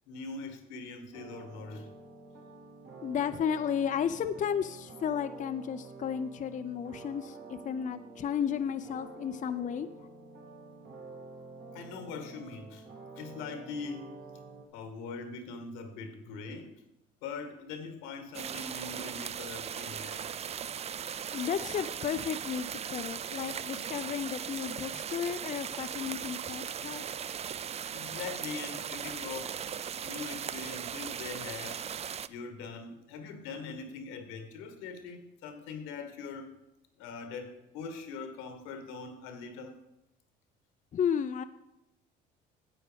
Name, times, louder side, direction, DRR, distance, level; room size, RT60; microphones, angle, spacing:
voice 1, 0.1-1.9 11.7-12.9 13.2-14.1 14.7-16.8 17.2-20.3 27.9-29.7 30.0-31.8 32.3-36.6 37.0-39.8, left 4 dB, 85° left, 7 dB, 1.4 m, -42 dB
sound 1, 1.1-14.7, right 3 dB, 55° right, 2.5 m, -49 dB
voice 2, 3.0-9.9 21.3-27.1 40.9-41.4, left 8 dB, 35° left, 9 dB, 0.5 m, -33 dB
sound 2, 18.3-32.3, right 8 dB, 30° right, 0.4 m, -38 dB
9.1 x 8.0 x 5.0 m, 0.87 s
supercardioid pair, 80°, 21 cm